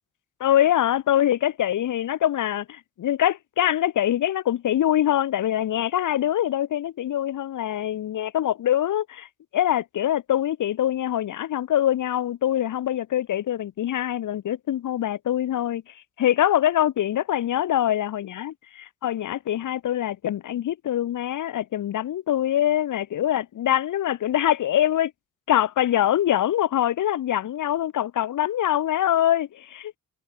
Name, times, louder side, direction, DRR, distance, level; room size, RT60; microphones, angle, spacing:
voice 1, 0.4-9.3 9.5-15.8 16.2-18.5 19.0-25.1 25.5-30.0, left 11 dB, 70° left, 0.7 m, -24 dB
wide cardioid pair, 120°, 32 cm